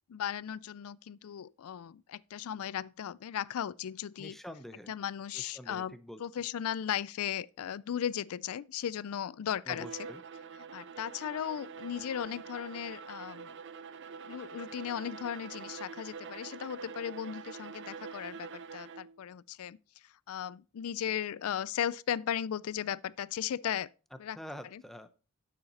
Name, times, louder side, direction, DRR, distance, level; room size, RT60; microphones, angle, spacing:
voice 1, 0.1-4.4 4.9-9.9 10.7-13.5 14.2-19.8 20.3-23.9 24.2-24.4 24.7-24.8, left 9 dB, 75° left, 0.4 m, -36 dB
voice 2, 4.2-4.9 5.3-6.2 9.7-10.2 24.4-25.1, equal, ahead, 0.6 m, -46 dB
Bowed string instrument, 9.7-19.2, right 5 dB, 55° right, 0.6 m, -45 dB
9.6 x 7.3 x 4.2 m
head